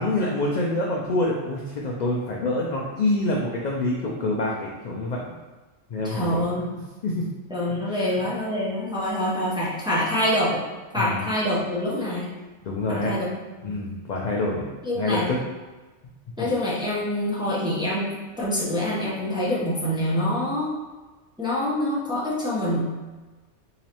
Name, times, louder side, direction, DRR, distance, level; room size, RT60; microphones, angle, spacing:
voice 1, 0.0-5.3 5.9-6.5 7.0-7.2 7.9-8.1 10.9-11.2 12.7-13.1 13.6-15.4 16.4-16.5, left 2 dB, 65° left, -3 dB, 0.4 m, -26 dB
voice 2, 6.0-6.6 7.5-10.6 10.9-12.3 12.9-13.3 13.7-13.8 14.8-15.3 16.4-20.7 21.4-22.8, left 1 dB, 5° right, -7 dB, 0.6 m, -25 dB
3.8 x 3.0 x 2.9 m, 1.2 s
omnidirectional pair, 1.3 m